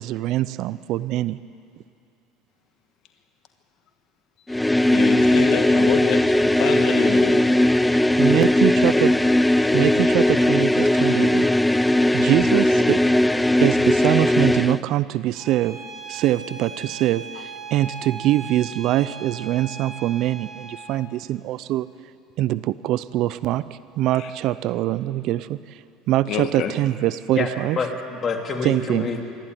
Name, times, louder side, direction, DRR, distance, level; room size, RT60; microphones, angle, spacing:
voice 1, 0.0-1.4 8.2-9.2 9.7-11.5 12.1-13.0 13.4-15.8 16.1-21.9 22.4-23.6 24.0-25.8 26.1-27.8 28.6-29.1, right 14 dB, 65° right, 17 dB, 0.6 m, -23 dB
sound 1, 4.5-14.8, left 1 dB, 5° left, 0.4 m, -18 dB
voice 2, 4.8-7.4 24.1-24.3 26.3-26.7, left 8 dB, 60° left, 6 dB, 1.6 m, -27 dB
Bowed string instrument, 15.3-21.0, right 4 dB, 30° right, 2.9 m, -38 dB
voice 3, 27.3-29.3, left 4 dB, 35° left, 3 dB, 3.0 m, -27 dB
25.5 x 11.5 x 9.6 m, 2.5 s
supercardioid pair, 95°, 0 cm